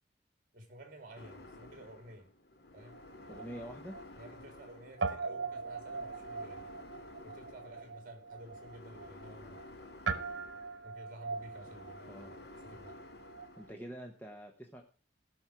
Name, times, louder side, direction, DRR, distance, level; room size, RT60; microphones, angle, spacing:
voice 1, 0.5-2.3 2.7-3.0 4.2-6.7 7.2-9.6 10.8-13.0, right 1 dB, 45° right, 3.1 m, -52 dB
sound 1, 1.2-13.7, left 2 dB, 60° left, 1.1 m, -53 dB
Guitar, 2.9-4.7 5.0-13.6, right 4 dB, 80° right, 1.2 m, -41 dB
voice 2, 3.3-4.0 7.7-7.8 12.1-12.3 13.6-14.8, equal, 10° left, 1.1 m, -46 dB
17.0 x 6.3 x 4.6 m
head